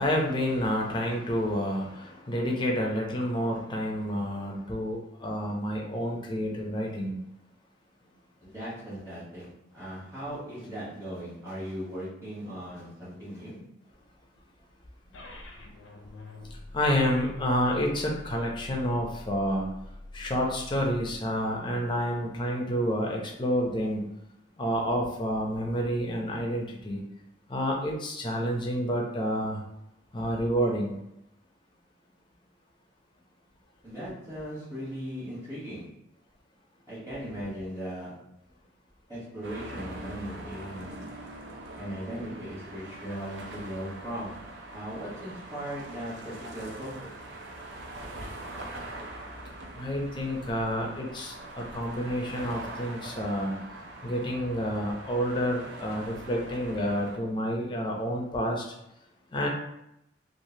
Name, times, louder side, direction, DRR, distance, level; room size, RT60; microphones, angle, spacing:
voice 1, 0.0-7.1 16.7-19.7 20.1-24.1 24.6-27.0 27.5-29.6 30.1-30.9 49.7-53.5 54.0-58.7 59.3-59.5, equal, 25° left, 0 dB, 0.5 m, -29 dB
voice 2, 8.4-13.6 33.8-35.9 36.9-38.3 39.1-41.1 41.8-47.1, equal, 15° right, -11 dB, 1.4 m, -38 dB
sound 1, 15.1-21.2, left 1 dB, 75° left, 0.5 m, -45 dB
sound 2, 39.4-57.2, right 1 dB, 65° right, 0.5 m, -43 dB
3.1 x 2.5 x 2.7 m, 0.84 s
head